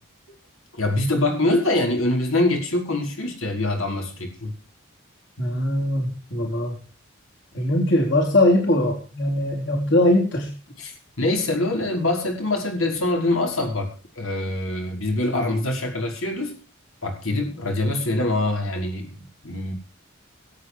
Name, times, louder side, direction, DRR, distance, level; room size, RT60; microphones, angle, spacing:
voice 1, 0.7-4.5 10.8-16.6 17.0-19.7, left 2 dB, 85° left, 5.3 m, -24 dB
voice 2, 5.4-6.8 7.5-10.5, left 1 dB, 60° left, 4.3 m, -21 dB
22.0 x 9.0 x 4.8 m
head